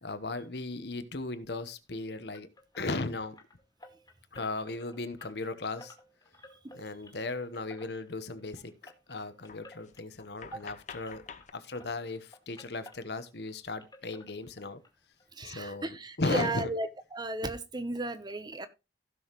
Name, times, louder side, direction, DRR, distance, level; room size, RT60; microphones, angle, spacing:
voice 1, 0.0-2.5 2.7-3.4 4.3-5.9 6.7-11.2 11.5-14.8 15.4-16.7, left 2 dB, 65° left, 1.1 m, -36 dB
sound 1, 2.3-11.5 11.7-13.5 13.8-14.9 15.2-15.3 15.7-15.8 16.2-16.3, left 2 dB, 25° left, 2.0 m, -55 dB
sound 2, 5.8-5.9 7.5-7.6 7.9-8.2 8.8-8.9 9.4-11.5, left 6 dB, 45° left, 0.7 m, -49 dB
voice 2, 15.3-18.7, right 2 dB, 25° right, 0.9 m, -35 dB
16.0 x 6.3 x 3.1 m
head